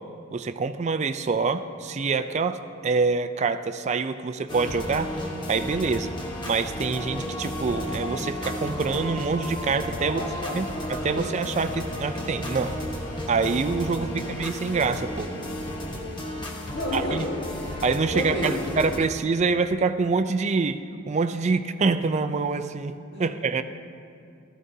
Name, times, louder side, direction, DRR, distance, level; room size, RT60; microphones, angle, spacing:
voice 1, 0.3-5.1 5.5-6.1 6.5-10.2 10.5-12.7 13.3-14.1 14.4-15.3 16.9-17.3 17.8-23.6, right 4 dB, 30° right, 10 dB, 0.3 m, -26 dB
sound 1, 4.5-19.0, left 1 dB, 20° left, 1.0 m, -33 dB
voice 2, 10.0-10.6 11.1-11.2 14.0-14.1 16.4-17.4 18.1-18.7 23.1-23.2, left 1 dB, 55° left, -4 dB, 2.3 m, -31 dB
15.0 x 13.5 x 2.7 m, 2.4 s
head